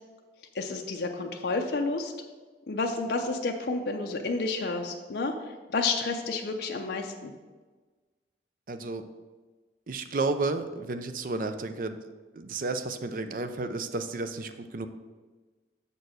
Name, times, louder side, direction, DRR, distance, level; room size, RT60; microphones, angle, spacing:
voice 1, 0.5-2.1 2.7-7.3, left 3 dB, 65° left, 2 dB, 0.6 m, -30 dB
voice 2, 8.7-9.1 9.9-12.0 12.3-14.9, right 3 dB, 50° right, 8 dB, 0.5 m, -32 dB
6.9 x 4.5 x 6.3 m, 1.3 s
head